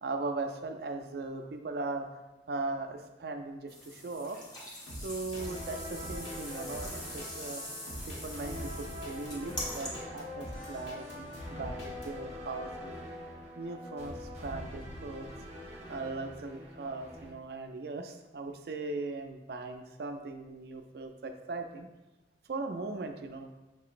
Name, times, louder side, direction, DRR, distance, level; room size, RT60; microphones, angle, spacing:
voice 1, 0.0-2.1 2.5-4.4 5.0-7.6 8.1-12.9 13.6-15.3 15.7-21.9 22.5-23.5, right 3 dB, 60° right, 6 dB, 0.4 m, -39 dB
sound 1, 3.7-9.9, left 1 dB, 20° left, 0.9 m, -43 dB
sound 2, 4.9-12.1, equal, 85° left, 1.4 m, -45 dB
sound 3, 5.3-17.3, left 1 dB, 40° right, 0.7 m, -43 dB
5.9 x 2.8 x 2.5 m, 1.0 s
head